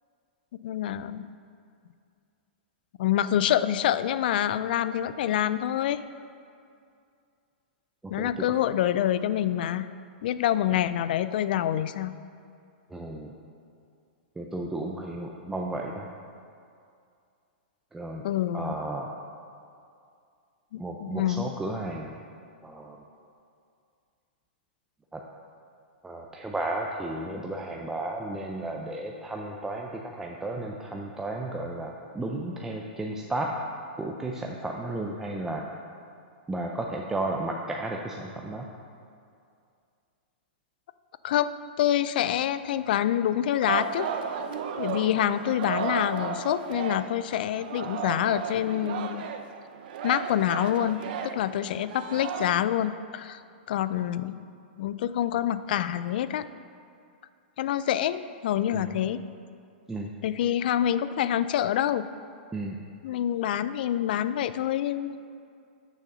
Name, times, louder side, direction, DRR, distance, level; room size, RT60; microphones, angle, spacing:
voice 1, 0.6-1.3 3.0-6.0 8.1-9.9 10.2-12.1 18.2-18.7 20.7-21.5 41.2-44.1 44.8-49.3 50.0-53.4 53.7-54.4 54.8-56.5 57.6-59.2 60.2-62.1 63.0-65.2, left 11 dB, 60° left, 14 dB, 0.3 m, -26 dB
voice 2, 8.0-8.4 12.9-13.3 14.4-16.1 17.9-18.3 18.5-19.1 20.8-22.2 22.6-23.0 25.1-25.2 26.0-33.6 34.0-35.6 36.5-38.7 58.7-59.0 59.9-60.1 62.5-62.8, right 2 dB, 10° right, 0 dB, 0.5 m, -33 dB
Singing, 43.7-47.3 47.5-52.5, right 7 dB, 60° right, 0.6 m, -34 dB
6.5 x 6.3 x 5.5 m, 2.4 s
hypercardioid pair, 135°, 6 cm